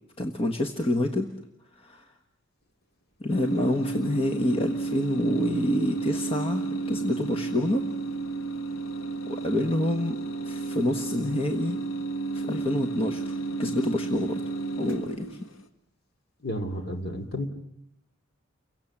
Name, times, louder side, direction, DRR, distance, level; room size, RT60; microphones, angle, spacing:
voice 1, 0.2-1.3 1.7-2.0 3.2-7.8 9.3-10.2 10.4-11.8 12.3-14.4 14.8-15.4, left 1 dB, 30° left, 4 dB, 1.4 m, -27 dB
sound 1, 3.3-15.6, right 3 dB, 90° left, 1.5 m, -32 dB
voice 2, 16.4-17.5, equal, 50° left, 4 dB, 2.8 m, -32 dB
30.0 x 23.0 x 7.4 m, 0.79 s
head